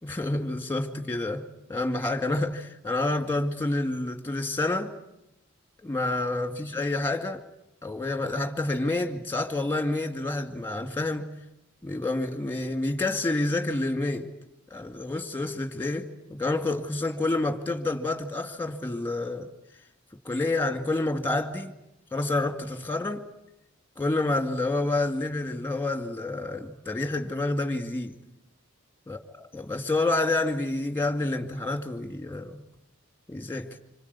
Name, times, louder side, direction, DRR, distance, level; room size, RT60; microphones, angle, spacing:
voice 1, 0.0-1.4 1.7-4.9 5.8-7.4 7.8-11.3 11.8-14.3 14.7-19.5 20.2-21.7 22.1-23.3 24.0-28.2 29.1-29.2 29.5-32.6 33.3-33.8, left 2 dB, 10° left, 2.3 m, -28 dB
26.5 x 26.0 x 8.4 m
head